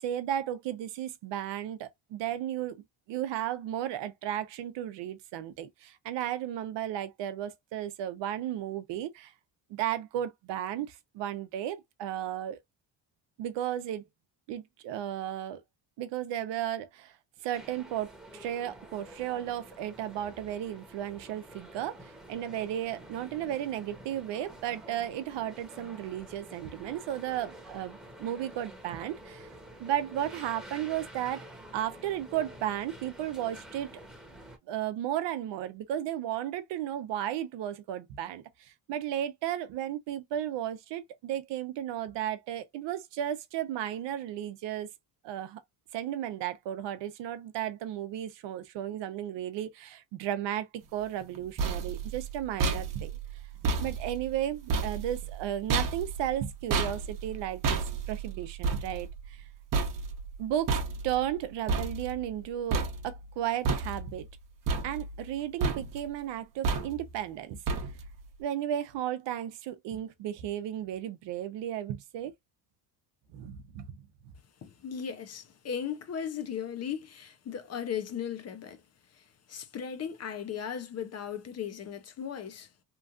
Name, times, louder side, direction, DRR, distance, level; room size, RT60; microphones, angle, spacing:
voice 1, 0.0-9.3 9.7-12.6 13.4-14.0 14.5-15.6 16.0-17.2 17.4-29.5 29.8-31.5 31.7-34.0 34.7-44.9 45.2-45.6 45.9-53.1 53.8-59.4 60.4-64.3 64.8-67.6 68.4-72.3 73.3-74.0, right 11 dB, 75° right, 0.7 m, -34 dB
sound 1, 17.5-34.6, right 1 dB, ahead, 0.9 m, -49 dB
sound 2, 51.2-62.4 62.7-63.3 63.6-64.3 64.7-65.3 65.6-66.1 66.6-67.2 67.7-68.2, right 4 dB, 50° right, 0.9 m, -32 dB
voice 2, 74.6-78.8 79.1-82.7, left 8 dB, 35° left, 0.6 m, -37 dB
3.0 x 2.4 x 2.4 m
cardioid pair, 145°, 43 cm